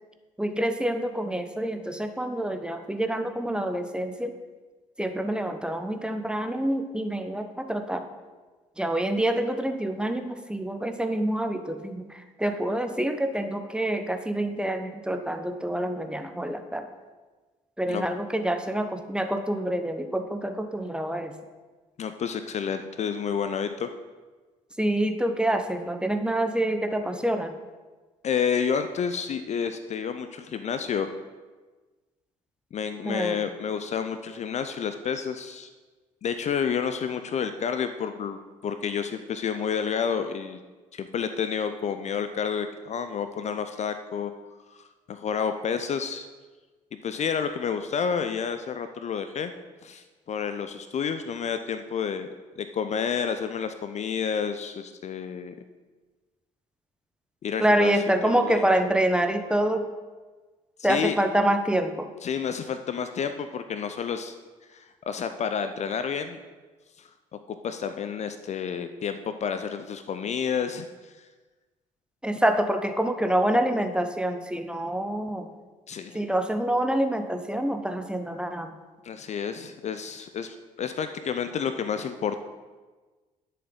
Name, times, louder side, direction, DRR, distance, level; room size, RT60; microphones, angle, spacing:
voice 1, 0.4-4.4 5.0-8.1 8.8-16.9 17.8-21.3 24.8-27.5 33.0-33.5 57.6-59.9 60.8-62.1 72.2-75.5 76.1-78.7, right 1 dB, 5° right, 7 dB, 0.8 m, -26 dB
voice 2, 22.0-23.9 28.2-31.1 32.7-35.7 36.2-40.6 40.9-44.3 44.7-46.3 47.0-49.5 49.8-52.3 52.6-55.5 57.4-57.9 58.2-58.6 60.8-61.2 62.2-64.3 64.7-66.4 67.0-67.1 67.5-70.9 75.9-76.2 79.0-82.5, left 7 dB, 40° left, 9 dB, 0.6 m, -30 dB
11.0 x 6.8 x 3.8 m, 1.3 s
figure-of-eight pair, 50°, 18 cm